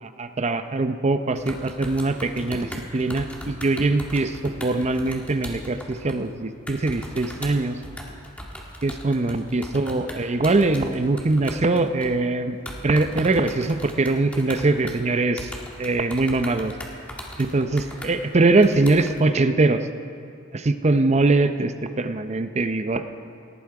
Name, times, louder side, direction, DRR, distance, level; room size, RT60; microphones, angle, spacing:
voice 1, 0.0-7.8 8.8-12.6 12.8-15.5 15.8-16.7 17.4-19.8 20.5-23.0, right 2 dB, 35° right, 9 dB, 0.6 m, -22 dB
sound 1, 1.4-6.3 6.7-12.3 12.7-15.0 15.4-19.2, equal, 5° left, 1.7 m, -38 dB
18.0 x 12.0 x 4.8 m, 2.5 s
head